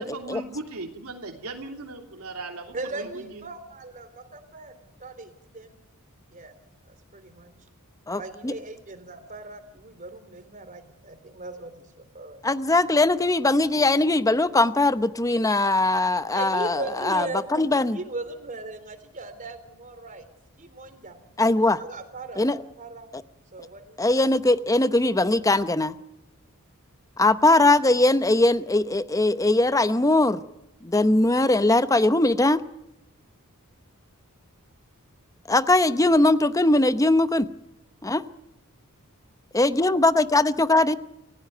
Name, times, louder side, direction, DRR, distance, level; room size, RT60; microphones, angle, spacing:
voice 1, 0.0-3.5, right 2 dB, 70° right, 3 dB, 3.0 m, -38 dB
voice 2, 2.7-5.7 6.3-6.5 6.9-7.5 8.2-12.4 16.3-20.3 20.6-21.3 21.8-23.1 23.5-24.2, right 2 dB, 35° right, 9 dB, 3.5 m, -38 dB
voice 3, 8.1-8.5 12.4-18.0 21.4-21.8 22.4-22.6 24.0-25.9 27.2-30.4 30.8-32.6 35.5-37.5 38.0-38.2 39.5-41.0, left 2 dB, 15° left, 12 dB, 0.8 m, -20 dB
29.0 x 16.5 x 9.3 m, 0.88 s
head